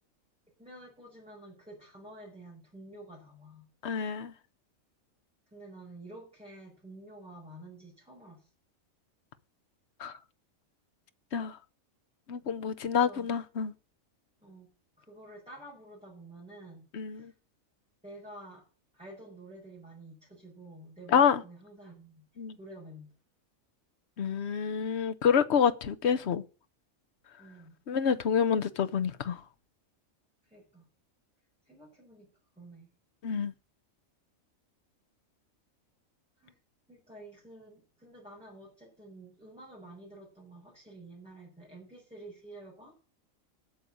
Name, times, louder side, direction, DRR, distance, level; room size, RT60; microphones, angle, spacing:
voice 1, 0.6-3.7 5.5-8.5 12.9-13.3 14.4-14.7 15.0-17.3 18.0-18.6 18.9-22.3 22.6-23.1 27.4-27.8 30.4-30.9 31.6-32.3 32.5-32.9 36.4-36.6 36.9-42.9, right 1 dB, 5° right, 5.1 m, -50 dB
voice 2, 3.8-4.3 10.0-10.1 11.3-11.6 12.3-13.7 16.9-17.3 21.1-21.4 22.4-22.6 24.2-26.4 27.9-29.4 33.2-33.5, left 7 dB, 55° left, 1.1 m, -27 dB
8.6 x 6.7 x 8.4 m
omnidirectional pair, 1.4 m